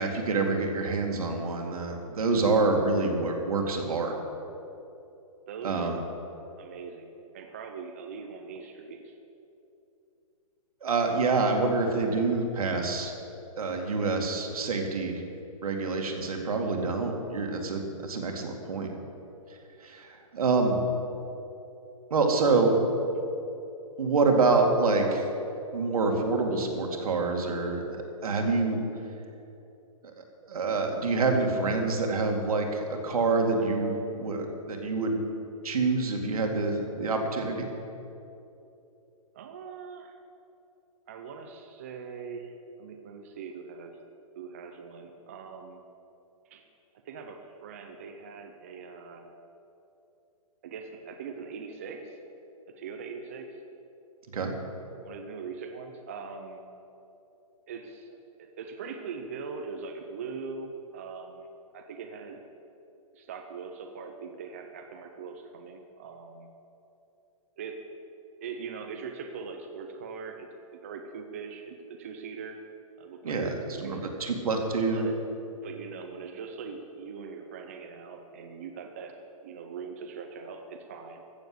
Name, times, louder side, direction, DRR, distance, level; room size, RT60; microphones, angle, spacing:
voice 1, 0.0-4.1 5.6-6.0 10.8-13.1 13.6-15.2 15.6-18.9 19.8-20.8 22.1-22.8 24.0-25.3 25.7-28.8 30.2-35.2 35.6-37.7 54.3-54.5 73.2-73.5 73.8-75.1, right 3 dB, 80° right, 2 dB, 2.3 m, -27 dB
voice 2, 5.5-6.0 6.6-9.1 39.3-40.1 41.1-44.0 44.4-45.8 46.5-46.6 47.0-49.3 50.6-52.2 52.7-53.6 55.0-56.6 57.7-61.5 61.7-62.4 63.1-66.5 67.6-67.8 68.4-72.6 73.0-74.2 74.9-75.2 75.6-79.1 79.4-81.2, right 5 dB, 25° right, 4 dB, 0.5 m, -41 dB
14.5 x 7.1 x 7.9 m, 2.8 s
hypercardioid pair, 180°, 19 cm